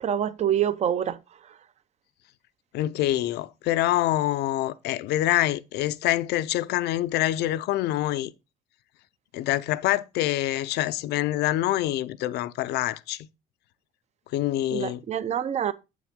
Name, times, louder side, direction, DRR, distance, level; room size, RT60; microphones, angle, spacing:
voice 1, 0.0-1.2 14.7-15.7, right 9 dB, 40° right, 0.6 m, -26 dB
voice 2, 2.7-8.3 9.3-13.3 14.3-15.0, left 14 dB, 75° left, 0.5 m, -26 dB
7.5 x 6.1 x 3.6 m
cardioid pair, 110°, 17 cm